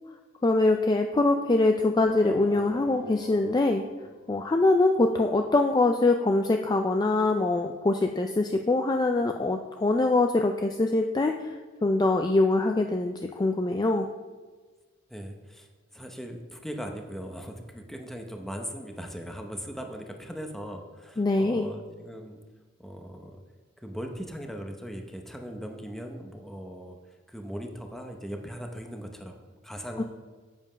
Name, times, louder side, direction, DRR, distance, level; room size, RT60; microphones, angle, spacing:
voice 1, 0.4-3.8 4.3-14.1 21.2-21.7 30.0-30.1, left 2 dB, 20° left, 5 dB, 0.3 m, -24 dB
sound 1, 2.0-4.8, left 2 dB, 70° left, 3.2 m, -44 dB
voice 2, 15.1-15.7 15.9-22.4 22.8-23.4 23.8-27.0 27.3-30.0, equal, ahead, 3 dB, 0.7 m, -39 dB
7.5 x 7.5 x 5.1 m, 1.4 s
head